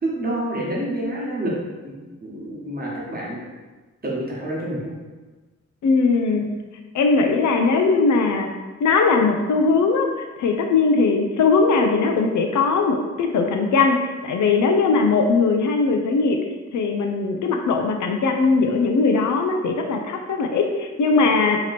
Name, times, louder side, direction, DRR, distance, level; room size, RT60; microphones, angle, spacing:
voice 1, 0.0-1.5 1.8-3.4 4.0-4.9, right 1 dB, 30° right, -5 dB, 1.2 m, -28 dB
voice 2, 5.8-6.4 6.9-8.5 8.8-10.1 10.4-16.4 16.7-21.6, left 4 dB, 75° left, 4 dB, 0.5 m, -19 dB
3.0 x 2.9 x 4.1 m, 1.3 s
wide cardioid pair, 100°, 30 cm